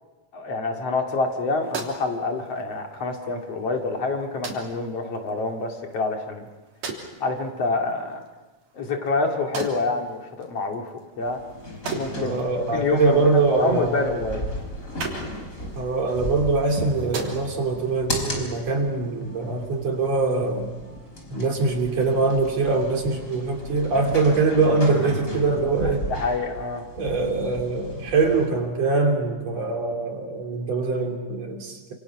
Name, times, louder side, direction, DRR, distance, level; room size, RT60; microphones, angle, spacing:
voice 1, 0.3-6.5 7.2-8.2 8.7-11.4 11.9-12.4 12.7-14.4 26.1-26.8, left 3 dB, 55° left, 2 dB, 3.3 m, -27 dB
sound 1, 1.2-17.9, right 4 dB, 80° right, 4.8 m, -41 dB
sound 2, 11.2-28.5, left 1 dB, 25° left, 5.0 m, -35 dB
voice 2, 12.2-14.0 15.8-20.7 21.3-26.1 26.9-31.9, right 3 dB, 55° right, 2 dB, 4.2 m, -23 dB
29.0 x 27.5 x 6.0 m, 1.3 s
omnidirectional pair, 3.5 m